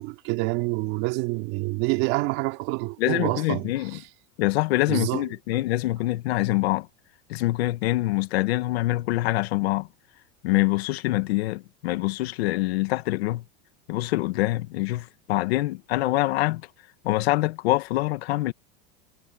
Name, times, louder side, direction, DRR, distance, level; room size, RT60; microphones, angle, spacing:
voice 1, 0.0-4.0 4.9-5.3, right 23 dB, 55° right, 2.5 m, -27 dB
voice 2, 3.0-4.0 4.4-6.9 7.3-9.9 10.4-13.4 13.9-16.6 17.0-18.5, left 18 dB, 80° left, 1.6 m, -25 dB
supercardioid pair, 155°, 31 cm